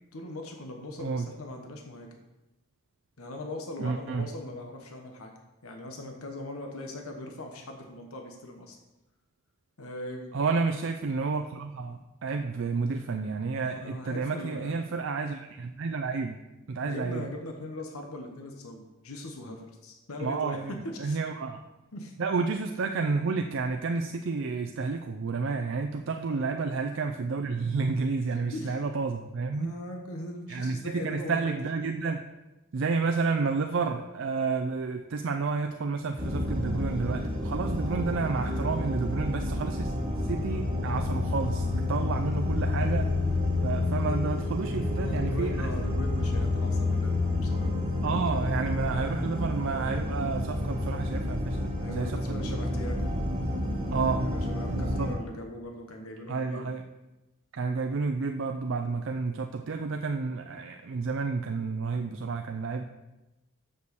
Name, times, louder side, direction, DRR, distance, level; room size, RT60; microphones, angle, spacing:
voice 1, 0.1-2.2 3.2-5.3 5.6-8.8 9.8-10.4 12.3-12.4 13.6-14.8 16.8-21.2 21.9-22.1 26.3-26.5 28.5-28.8 29.5-31.6 39.2-39.5 44.9-47.7 51.8-53.1 54.2-56.7, left 1 dB, 90° left, 3 dB, 1.1 m, -40 dB
voice 2, 1.0-1.3 3.8-4.3 10.3-16.4 16.7-17.3 20.2-20.7 21.0-21.6 22.2-29.7 30.5-32.2 32.7-39.9 40.2-43.1 43.6-45.7 48.0-52.6 53.9-54.3 54.7-55.1 56.3-56.8 57.5-62.8, right 4 dB, 60° right, 4 dB, 0.4 m, -30 dB
sound 1, 36.2-55.1, left 2 dB, 25° right, 1.4 m, -29 dB
6.3 x 5.3 x 6.8 m, 1.0 s
head